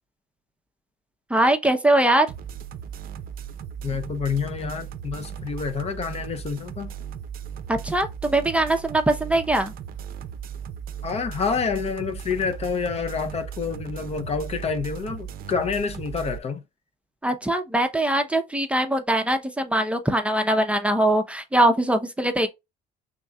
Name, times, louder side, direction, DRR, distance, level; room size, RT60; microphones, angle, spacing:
voice 1, 1.3-2.3 7.7-9.7 17.2-22.5, right 1 dB, 5° right, 0.6 m, -22 dB
sound 1, 2.3-16.4, right 8 dB, 60° right, 0.5 m, -37 dB
voice 2, 3.8-6.9 11.0-16.6, left 5 dB, 40° left, 0.7 m, -28 dB
5.1 x 3.6 x 2.2 m
cardioid pair, 110°, 17 cm